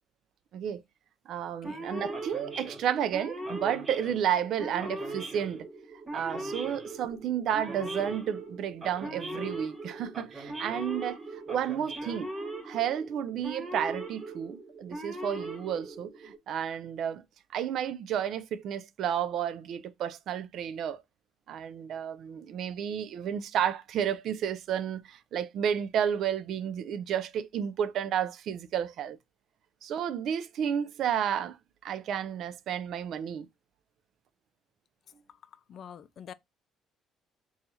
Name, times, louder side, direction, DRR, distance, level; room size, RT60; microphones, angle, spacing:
voice 1, 1.3-5.7 6.1-12.3 12.6-17.2 17.5-21.0 21.5-29.2 29.8-31.6 31.8-33.5, right 9 dB, 65° right, 0.4 m, -32 dB
Male speech man speaking / Siren, 1.6-16.4, right 2 dB, 30° right, 1.2 m, -39 dB
voice 2, 35.7-36.3, left 8 dB, 50° left, 0.3 m, -45 dB
4.1 x 2.4 x 2.6 m
cardioid pair, 115°, 0 cm